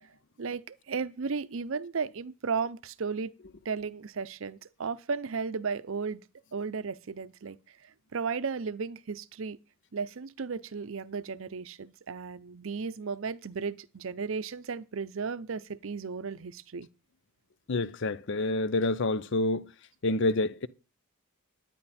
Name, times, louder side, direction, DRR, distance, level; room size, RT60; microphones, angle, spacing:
voice 1, 0.4-3.3 3.6-6.3 6.5-7.6 7.8-9.6 9.9-16.9, right 5 dB, 65° right, 0.6 m, -35 dB
voice 2, 17.7-19.7 20.0-20.7, left 2 dB, 55° left, 0.6 m, -28 dB
10.5 x 9.9 x 4.2 m
head